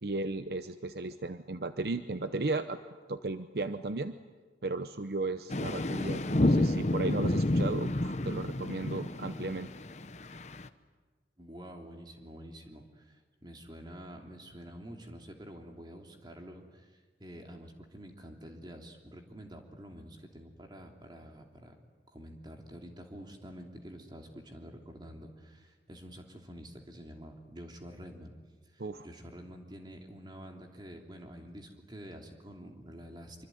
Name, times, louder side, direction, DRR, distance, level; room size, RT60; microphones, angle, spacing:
voice 1, 0.0-2.8 3.1-4.2 4.6-9.7 28.8-29.1, right 3 dB, 60° right, 10 dB, 0.8 m, -35 dB
sound 1, 5.5-10.7, left 1 dB, 40° left, 0.9 m, -30 dB
voice 2, 11.4-21.8 22.1-28.3 28.7-33.5, equal, 25° right, 2 dB, 3.1 m, -48 dB
26.0 x 24.5 x 9.4 m, 1.4 s
head